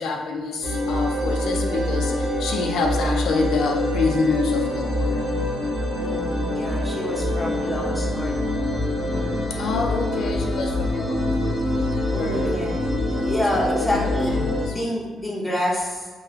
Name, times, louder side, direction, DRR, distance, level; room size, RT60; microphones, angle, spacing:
voice 1, 0.0-5.2 6.9-7.3 9.6-11.6 12.1-13.3 13.8-14.4 14.7-14.8, left 3 dB, 80° left, 1 dB, 0.4 m, -28 dB
sound 1, 0.6-14.7, left 1 dB, 75° right, 1.1 m, -25 dB
voice 2, 1.4-2.1 6.0-8.6 9.0-9.4 12.1-12.8 13.2-16.1, left 1 dB, 10° left, -4 dB, 0.7 m, -28 dB
3.6 x 2.2 x 2.7 m, 1.4 s
cardioid pair, 115°, 0 cm